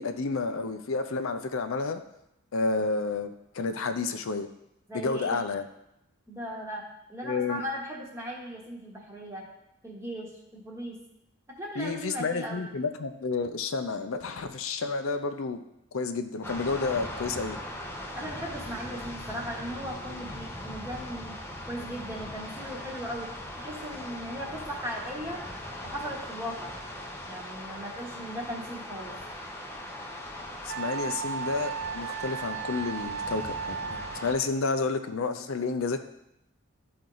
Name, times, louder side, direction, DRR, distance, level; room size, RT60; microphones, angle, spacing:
voice 1, 0.0-2.0 2.5-4.5 4.9-5.7 7.2-7.6 11.8-15.6 15.9-17.6 30.6-36.0, left 4 dB, 65° left, 8 dB, 0.5 m, -30 dB
voice 2, 4.9-5.4 6.3-6.8 7.1-9.5 9.8-11.0 11.6-12.7 18.2-21.4 21.7-23.3 23.6-25.4 25.8-26.7 27.2-29.1, equal, 10° right, -2 dB, 1.2 m, -37 dB
sound 1, 16.4-34.3, left 1 dB, 10° left, 0.7 m, -40 dB
Wind instrument woodwind instrument, 30.7-34.5, right 7 dB, 55° right, 0.3 m, -35 dB
12.0 x 4.3 x 3.9 m, 0.83 s
head